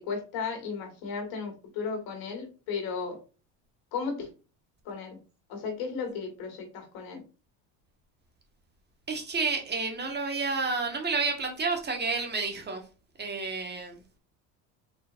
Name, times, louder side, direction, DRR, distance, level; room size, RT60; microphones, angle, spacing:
voice 1, 0.0-3.2 3.9-4.3 4.8-5.2 5.5-7.2, left 5 dB, 65° left, 2.2 m, -35 dB
voice 2, 9.1-12.8 13.2-13.9, right 4 dB, 25° right, 1.6 m, -30 dB
4.5 x 4.3 x 2.6 m
supercardioid pair, 105°, 39 cm